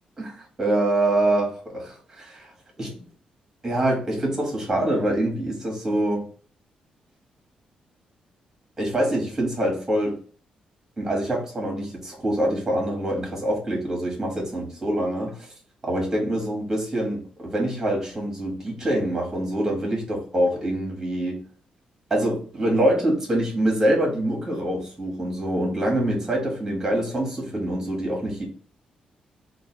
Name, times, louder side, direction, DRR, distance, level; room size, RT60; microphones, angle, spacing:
voice 1, 0.2-2.5 2.8-2.9 3.6-6.2 8.8-10.1 11.0-15.5 15.8-21.4 22.1-28.5, right 1 dB, 15° right, -1 dB, 1.3 m, -25 dB
3.2 x 2.4 x 4.3 m, 0.43 s
wide cardioid pair, 180°, 3 cm